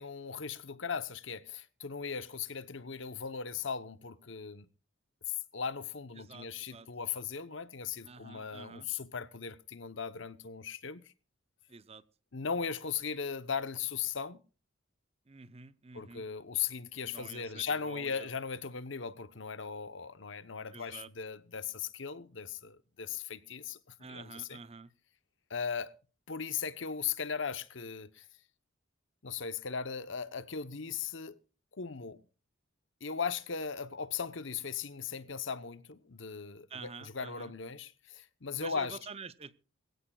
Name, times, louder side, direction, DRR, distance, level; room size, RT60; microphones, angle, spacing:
voice 1, 0.0-4.7 5.3-11.0 12.3-14.4 15.9-23.8 24.1-24.6 25.5-25.9 26.3-28.2 29.2-31.4 31.7-32.2 33.0-39.0, left 6 dB, 65° left, 1.0 m, -38 dB
voice 2, 6.2-6.9 8.0-8.9 11.7-12.0 15.3-16.3 17.0-18.3 20.7-21.1 24.0-24.9 36.7-37.5 38.6-39.6, right 4 dB, 30° right, 0.7 m, -48 dB
21.5 x 16.0 x 2.4 m
head